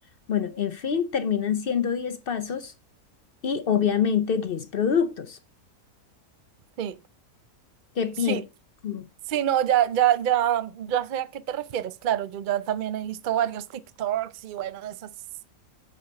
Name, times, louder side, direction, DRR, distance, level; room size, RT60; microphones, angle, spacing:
voice 1, 0.3-2.7 3.4-5.4 8.0-8.4 8.8-9.0, left 7 dB, 55° left, 0.6 m, -25 dB
voice 2, 9.3-15.1, right 11 dB, 65° right, 0.5 m, -26 dB
8.4 x 5.3 x 5.1 m
omnidirectional pair, 1.6 m